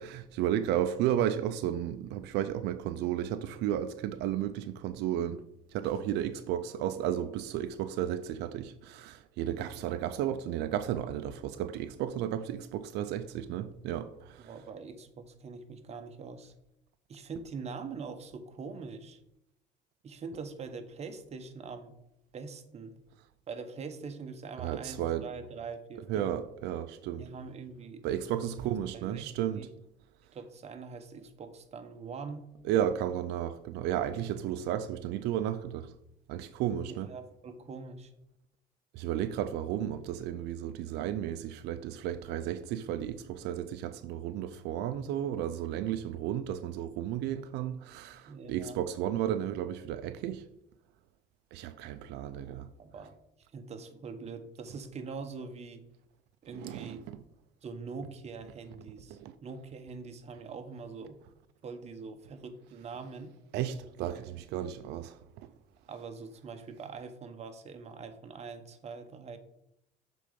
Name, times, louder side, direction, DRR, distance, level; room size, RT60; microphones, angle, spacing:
voice 1, 0.0-5.4 5.7-14.5 24.6-25.2 26.1-27.2 28.0-29.7 32.6-35.9 36.3-37.1 38.9-50.4 51.5-52.7 56.5-57.2 59.1-59.3 63.5-65.5, right 11 dB, 85° right, 0.4 m, -33 dB
voice 2, 14.4-16.5 17.1-19.2 20.0-21.9 22.3-22.9 23.5-26.3 27.2-28.0 28.9-29.7 30.3-32.5 36.9-38.1 48.3-48.8 52.4-53.1 53.5-55.8 56.4-57.0 57.6-61.2 61.6-63.3 65.9-69.4, right 5 dB, 40° right, 0.9 m, -43 dB
6.8 x 3.8 x 5.1 m
cardioid pair, 110°, 17 cm